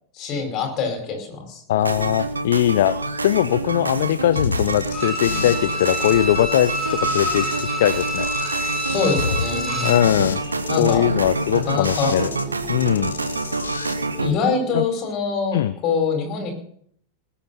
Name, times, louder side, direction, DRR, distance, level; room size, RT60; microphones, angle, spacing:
voice 1, 0.1-1.6 8.9-10.0 10.7-11.0 11.7-12.1 14.2-16.5, left 5 dB, 35° left, 4 dB, 5.1 m, -24 dB
voice 2, 1.7-8.3 9.8-10.4 10.8-12.3 12.7-13.1 14.7-14.8 15.5-15.7, left 12 dB, 55° left, 14 dB, 0.6 m, -20 dB
sound 1, 1.8-14.3, right 3 dB, 80° right, 1.1 m, -28 dB
sound 2, 4.4-7.6 7.9-12.4 12.7-13.9, left 5 dB, 70° left, 1.5 m, -31 dB
Bowed string instrument, 4.9-10.1 10.5-10.6, equal, 5° right, 7.6 m, -27 dB
20.0 x 8.5 x 5.8 m, 0.65 s
figure-of-eight pair, 90°, 0 cm